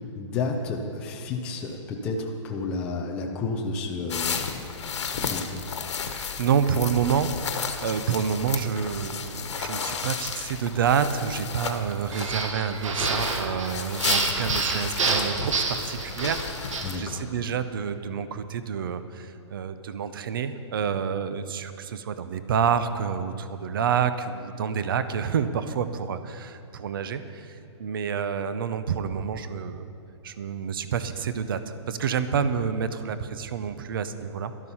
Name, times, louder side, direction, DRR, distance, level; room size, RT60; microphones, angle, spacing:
voice 1, 0.1-5.6 16.8-17.2, left 3 dB, 5° left, 0 dB, 0.4 m, -31 dB
sound 1, 4.1-17.0, left 6 dB, 65° left, 1.3 m, -33 dB
voice 2, 6.1-29.9 30.2-34.5, right 7 dB, 45° right, 12 dB, 0.7 m, -28 dB
sound 2, 12.1-17.0, right 4 dB, 80° right, 1.6 m, -28 dB
12.5 x 12.0 x 5.6 m, 2.8 s
hypercardioid pair, 175°, 16 cm